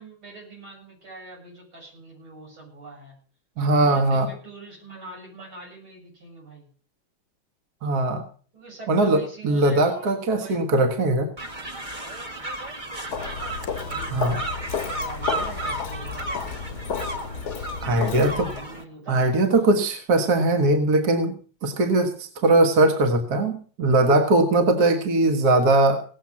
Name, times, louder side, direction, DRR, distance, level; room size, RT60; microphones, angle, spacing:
voice 1, 0.0-3.2 3.7-6.7 8.5-10.9 13.0-16.8 17.8-19.7, right 3 dB, 85° right, -1 dB, 8.4 m, -43 dB
voice 2, 3.6-4.3 7.8-8.2 8.9-11.3 14.1-14.3 17.8-18.5 19.1-26.0, right 2 dB, 50° right, 5 dB, 2.0 m, -20 dB
sound 1, 11.4-18.8, right 1 dB, 25° right, 1.6 m, -34 dB
Walk footsteps, 13.1-18.7, left 6 dB, 55° left, 1.5 m, -32 dB
18.5 x 7.5 x 7.2 m, 0.42 s
omnidirectional pair, 2.2 m